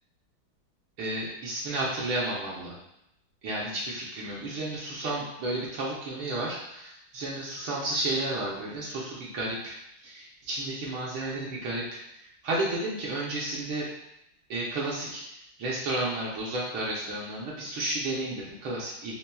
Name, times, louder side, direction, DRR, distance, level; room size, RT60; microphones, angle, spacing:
voice 1, 1.0-2.8 3.4-9.7 10.0-11.8 12.2-13.9 14.5-15.2 15.6-19.2, right 2 dB, 70° right, -5 dB, 1.5 m, -32 dB
4.4 x 3.2 x 2.2 m, 0.80 s
omnidirectional pair, 2.4 m